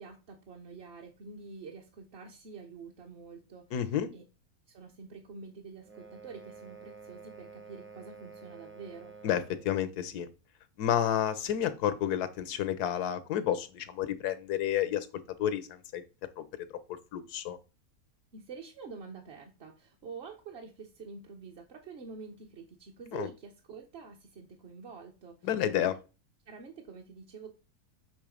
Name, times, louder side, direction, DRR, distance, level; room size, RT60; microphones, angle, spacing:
voice 1, 0.0-4.2 4.7-9.1 18.3-25.5 25.8-25.9 26.5-27.5, right 5 dB, 50° right, 1 dB, 0.9 m, -47 dB
voice 2, 3.7-4.1 9.2-10.3 10.8-15.1 15.4-16.0 16.4-16.5 17.1-17.6 23.1-23.3 25.4-25.9, left 10 dB, 90° left, 13 dB, 1.3 m, -30 dB
sound 1, 5.8-9.7, right 5 dB, 15° right, 0.5 m, -50 dB
7.0 x 3.2 x 4.9 m, 0.31 s
omnidirectional pair, 1.6 m